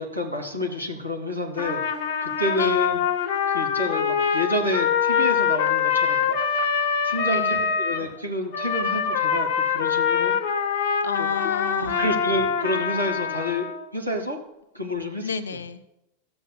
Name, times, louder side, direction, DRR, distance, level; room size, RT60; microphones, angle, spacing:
voice 1, 0.0-1.8 2.2-3.0 3.5-6.4 6.7-10.3 11.2-11.3 11.8-13.7 13.9-14.4 14.7-15.3, left 1 dB, 90° right, -1 dB, 1.8 m, -29 dB
Trumpet, 1.6-8.0 8.5-13.8, left 7 dB, 45° left, 1.0 m, -24 dB
voice 2, 2.5-2.9 7.2-7.7 11.0-12.2 15.2-15.8, left 6 dB, 70° left, 11 dB, 0.7 m, -32 dB
15.0 x 7.9 x 2.2 m, 0.88 s
figure-of-eight pair, 90°, 0 cm